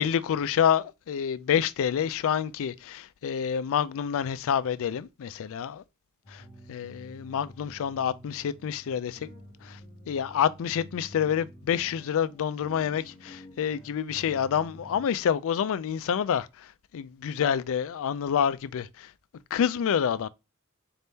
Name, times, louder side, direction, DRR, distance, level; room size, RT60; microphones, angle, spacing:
voice 1, 0.0-5.8 6.3-6.4 6.7-9.3 9.6-9.8 10.1-19.1 19.5-20.3, left 8 dB, 65° left, 0.3 m, -28 dB
sound 1, 6.2-15.1, equal, 25° left, 1.2 m, -50 dB
4.2 x 2.7 x 3.5 m
head